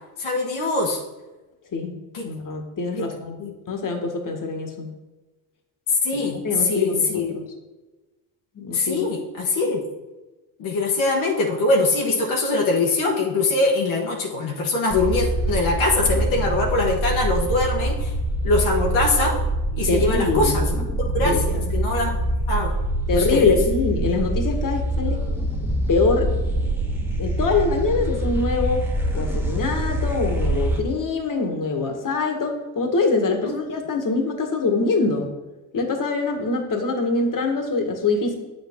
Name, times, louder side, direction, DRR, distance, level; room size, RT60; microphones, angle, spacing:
voice 1, 0.2-1.0 2.1-2.3 3.0-3.1 3.4-3.5 6.0-7.3 8.7-9.8 10.6-18.1 18.4-19.4 19.7-20.7 21.0-22.2 22.5-22.8 23.1-23.5 33.4-33.6, left 2 dB, 70° left, -1 dB, 1.4 m, -22 dB
voice 2, 2.2-3.4 3.7-4.9 6.1-7.4 8.6-9.0 19.9-20.8 21.2-21.8 23.1-25.2 25.6-26.3 27.2-28.8 29.1-35.3 35.7-38.3, left 3 dB, 40° left, 4 dB, 1.5 m, -24 dB
sound 1, 14.9-30.8, right 1 dB, 5° right, 1.3 m, -25 dB
7.8 x 6.6 x 3.7 m, 1.1 s
supercardioid pair, 75°, 49 cm